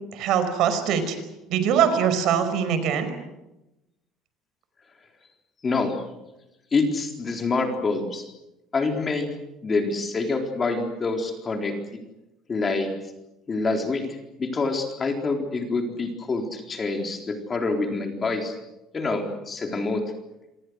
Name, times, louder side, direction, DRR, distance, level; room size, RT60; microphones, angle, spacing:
voice 1, 0.1-1.2 1.5-3.1, right 8 dB, 55° right, 10 dB, 5.1 m, -22 dB
voice 2, 5.6-6.0 6.7-8.3 8.7-9.3 9.6-11.8 12.5-12.9 13.5-14.0 14.4-18.5 18.9-20.0, left 3 dB, 20° left, 3 dB, 4.0 m, -26 dB
27.5 x 26.0 x 6.5 m, 0.94 s
cardioid pair, 160°, 0 cm